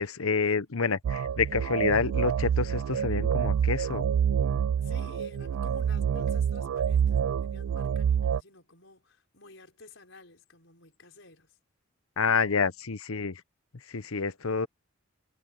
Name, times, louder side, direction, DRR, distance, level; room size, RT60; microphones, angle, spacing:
voice 1, 0.0-4.1 12.2-13.4 13.7-14.7, left 5 dB, 80° left, 1.0 m, -28 dB
sound 1, 1.0-8.4, right 8 dB, 80° right, 0.3 m, -27 dB
voice 2, 4.8-11.5, left 2 dB, 60° left, 6.0 m, -51 dB
head